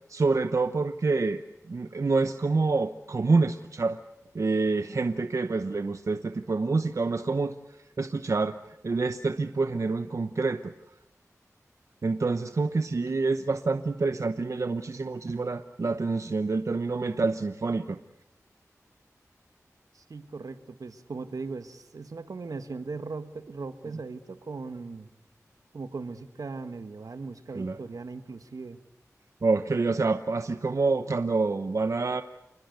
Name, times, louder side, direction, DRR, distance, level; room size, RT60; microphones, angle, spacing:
voice 1, 0.1-1.4 1.7-4.0 4.3-7.5 8.0-8.6 8.8-10.7 12.0-18.0 27.5-27.8 29.4-32.2, right 3 dB, 65° right, 9 dB, 0.9 m, -27 dB
voice 2, 19.9-25.1 25.7-28.8, right 4 dB, 90° right, 10 dB, 1.6 m, -38 dB
28.0 x 21.0 x 8.1 m, 0.87 s
wide cardioid pair, 80°, 6 cm